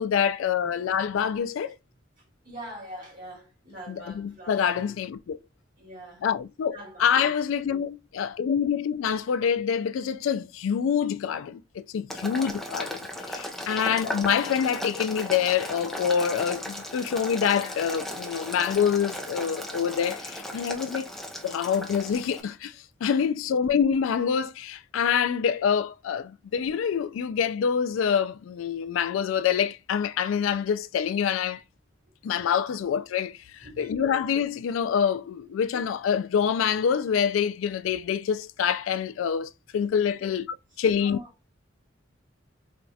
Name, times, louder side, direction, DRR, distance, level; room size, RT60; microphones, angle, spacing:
voice 1, 0.0-1.8 4.2-5.4 6.2-21.1 21.4-22.8 23.0-31.6 32.2-40.5 40.8-41.2, left 7 dB, 85° left, 0.3 m, -26 dB
voice 2, 2.2-5.0 5.8-6.3 6.6-7.3 12.1-12.4 13.6-13.9 23.4-23.6 33.6-34.0 35.5-35.6 40.2-40.3 40.9-41.3, right 1 dB, 45° right, 2.2 m, -45 dB
Boiling, 12.1-22.4, equal, ahead, 0.5 m, -36 dB
4.5 x 2.4 x 2.6 m
head